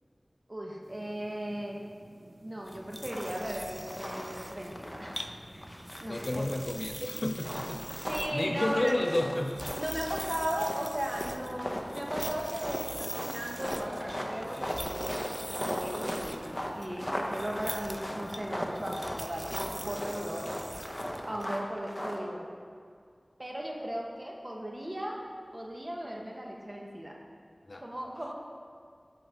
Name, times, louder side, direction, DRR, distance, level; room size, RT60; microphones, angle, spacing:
voice 1, 0.5-1.8 2.4-5.3 6.0-6.4 7.1-7.2 8.1-9.0 9.8-15.1 15.5-20.5 21.2-22.5 23.4-25.2 25.5-27.1 27.8-28.3, equal, 30° right, -1 dB, 1.1 m, -37 dB
sound 1, 0.8-20.2, right 1 dB, 90° right, 0.6 m, -55 dB
sound 2, 2.6-21.5, equal, 5° right, 0.4 m, -44 dB
sound 3, 3.1-3.6 3.9-5.3 5.6-6.8 7.3-22.2, equal, 15° left, 0.8 m, -37 dB
voice 2, 6.0-9.6 27.6-27.8, left 1 dB, 65° left, 4 dB, 0.5 m, -32 dB
7.8 x 4.4 x 5.0 m, 2.2 s
wide cardioid pair, 40°, 0 cm